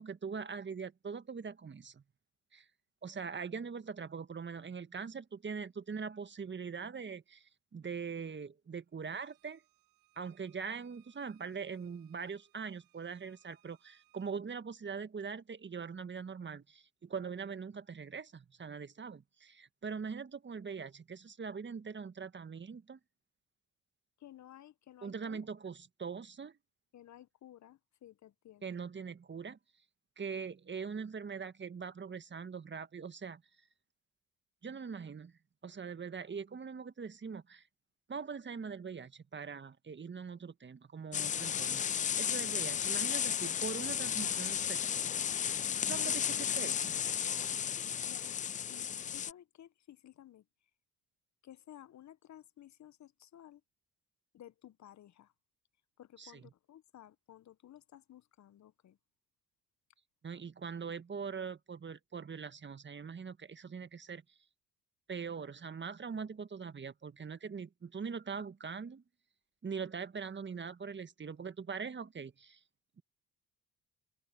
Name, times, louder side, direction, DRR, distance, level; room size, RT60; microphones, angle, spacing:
voice 1, 0.0-2.0 2.5-2.6 3.0-9.6 10.2-23.0 25.0-26.6 28.6-29.6 30.2-33.4 34.6-35.3 35.6-37.6 38.1-45.1 45.8-47.0 56.2-56.3 60.2-64.2 65.1-69.0 69.6-72.6, right 5 dB, 30° right, 1.7 m, -42 dB
Bowed string instrument, 9.1-14.3, right 22 dB, 70° right, 7.2 m, -71 dB
voice 2, 24.2-25.5 26.9-28.7 48.0-48.4 48.7-50.4 51.4-53.6 54.3-55.3 56.0-59.0, left 12 dB, 50° left, 1.3 m, -55 dB
sound 1, 41.1-49.3, left 8 dB, 20° left, 0.3 m, -34 dB
hypercardioid pair, 55°, 36 cm